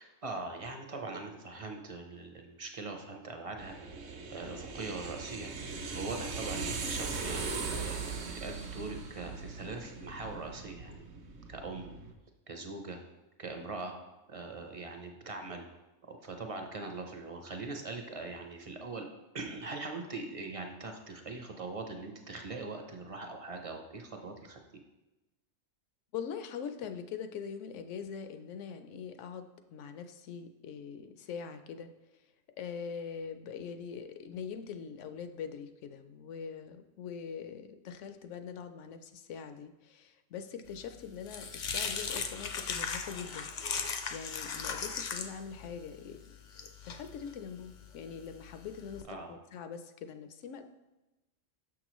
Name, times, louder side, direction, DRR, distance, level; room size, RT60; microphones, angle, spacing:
voice 1, 0.0-3.9 4.3-5.5 5.9-11.0 11.5-11.9 12.5-13.0 13.4-13.9 14.3-15.6 16.1-19.1 19.3-24.6 49.1-49.4, right 3 dB, 40° right, 4 dB, 0.5 m, -41 dB
sound 1, 3.6-12.1, right 4 dB, 65° right, 1.0 m, -39 dB
voice 2, 26.1-31.9 32.6-43.5 44.1-46.2 46.6-50.6, left 7 dB, 75° left, 8 dB, 0.9 m, -43 dB
sound 2, 40.8-49.0, left 6 dB, 55° left, 0.5 m, -38 dB
6.5 x 6.1 x 3.0 m, 1.0 s
omnidirectional pair, 1.3 m